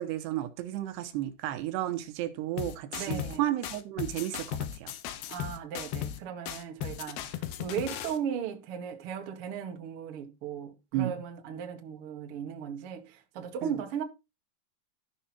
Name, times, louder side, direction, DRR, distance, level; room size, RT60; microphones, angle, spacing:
voice 1, 0.0-4.9 10.9-11.1 13.6-13.8, right 13 dB, 85° right, 3.2 m, -33 dB
sound 1, 2.6-3.4 3.6-6.2 6.5-8.2, left 11 dB, 75° left, 3.0 m, -36 dB
voice 2, 3.0-3.5 5.3-14.0, right 8 dB, 55° right, 1.6 m, -37 dB
13.5 x 5.5 x 4.3 m
omnidirectional pair, 4.8 m